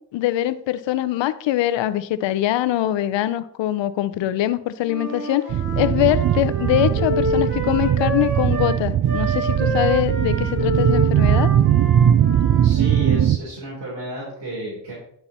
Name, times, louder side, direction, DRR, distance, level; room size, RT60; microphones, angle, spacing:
voice 1, 0.1-5.4 5.7-11.5, left 13 dB, 85° left, 14 dB, 0.6 m, -23 dB
Wind instrument woodwind instrument, 4.8-13.2, equal, 25° right, 4.1 m, -28 dB
sound 1, 5.5-13.4, right 10 dB, 45° right, 0.4 m, -19 dB
voice 2, 12.6-14.9, right 1 dB, 70° right, -6 dB, 3.6 m, -32 dB
9.9 x 5.7 x 4.2 m, 0.70 s
cardioid pair, 80°, 43 cm